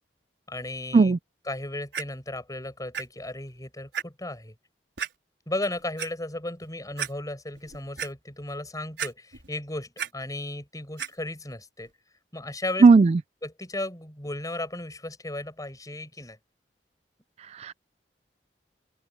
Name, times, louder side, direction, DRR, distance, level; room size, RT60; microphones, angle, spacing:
voice 1, 0.5-1.2 1.5-4.5 5.5-11.9 12.3-12.9 13.4-16.4, left 1 dB, 20° left, 6.7 m, -35 dB
Clock, 1.9-2.0 2.9-3.0 3.5-3.6 3.9-4.0 5.0-5.1 5.8-6.1 6.6-6.7 7.0-7.1 7.6-8.1 9.0-9.5 9.8-10.1 11.0-11.1 11.8-11.9, right 8 dB, 85° right, 4.7 m, -32 dB
voice 2, 12.8-13.2 17.5-17.7, right 4 dB, 35° right, 0.3 m, -16 dB
open air
head